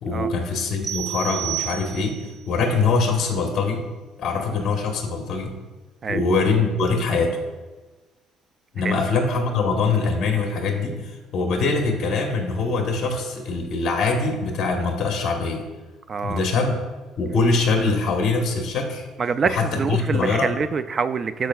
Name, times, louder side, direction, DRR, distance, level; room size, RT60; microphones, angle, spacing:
voice 1, 0.0-2.2 2.5-3.8 4.2-5.5 6.1-7.4 8.7-15.6 16.2-16.8 17.2-19.1 19.4-20.5, left 4 dB, 45° left, 2 dB, 1.1 m, -23 dB
sound 1, 0.8-2.4, right 13 dB, 15° right, 0.7 m, -31 dB
voice 2, 16.1-16.4 19.2-21.5, right 5 dB, 30° right, 13 dB, 0.3 m, -25 dB
13.5 x 4.7 x 2.3 m, 1.2 s
cardioid pair, 135°, 0 cm